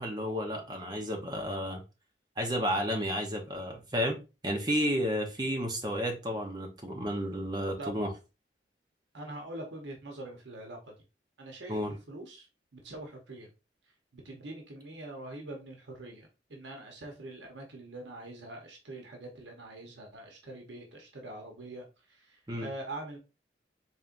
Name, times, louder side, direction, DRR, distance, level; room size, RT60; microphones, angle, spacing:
voice 1, 0.0-1.8 2.4-8.1 11.7-11.9 22.5-22.7, equal, 25° right, 0.8 m, -32 dB
voice 2, 9.1-11.0 11.4-11.8 12.1-12.5 12.7-13.5 14.1-23.2, right 1 dB, 85° right, 0.9 m, -44 dB
4.3 x 3.3 x 2.5 m
head